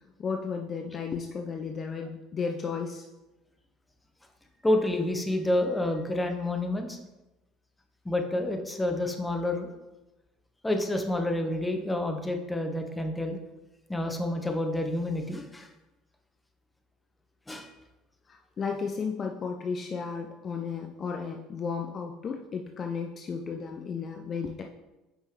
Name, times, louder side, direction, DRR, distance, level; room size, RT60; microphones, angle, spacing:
voice 1, 0.2-3.1 18.3-24.6, left 5 dB, 40° left, 3 dB, 0.6 m, -34 dB
voice 2, 4.6-7.0 8.0-9.7 10.6-13.4 13.9-15.7 17.5-17.7, left 1 dB, 10° left, 4 dB, 1.1 m, -29 dB
8.7 x 5.4 x 3.3 m, 1.0 s
hypercardioid pair, 65°, 0 cm